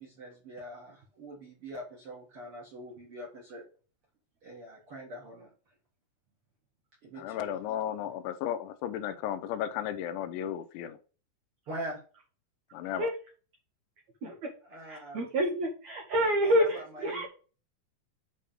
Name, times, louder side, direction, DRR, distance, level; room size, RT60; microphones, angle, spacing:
voice 1, 0.0-3.6 4.4-5.5 7.0-7.6 11.7-12.0 14.6-15.3 16.4-17.3, equal, 45° right, 1.8 m, -43 dB
voice 2, 7.2-11.0 12.7-13.1, left 10 dB, 85° left, 3.0 m, -34 dB
voice 3, 14.9-17.3, equal, 80° right, 1.5 m, -28 dB
8.5 x 3.5 x 5.1 m
omnidirectional pair, 5.3 m